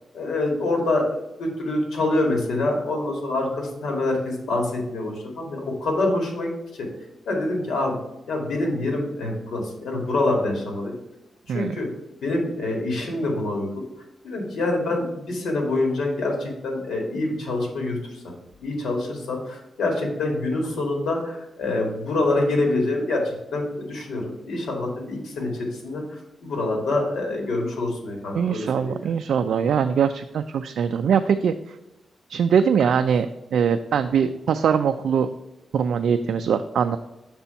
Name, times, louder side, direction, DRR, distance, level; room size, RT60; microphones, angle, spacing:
voice 1, 0.1-1.0 1.4-6.5 7.3-8.0 8.3-10.9 11.5-11.9 12.2-13.8 14.2-18.3 18.6-29.0, left 2 dB, 90° left, 1 dB, 2.0 m, -26 dB
voice 2, 28.3-31.8 32.3-33.3 33.5-35.3 35.7-37.0, right 7 dB, 75° right, 8 dB, 0.3 m, -22 dB
6.1 x 4.2 x 5.7 m, 0.94 s
wide cardioid pair, 165°, 0 cm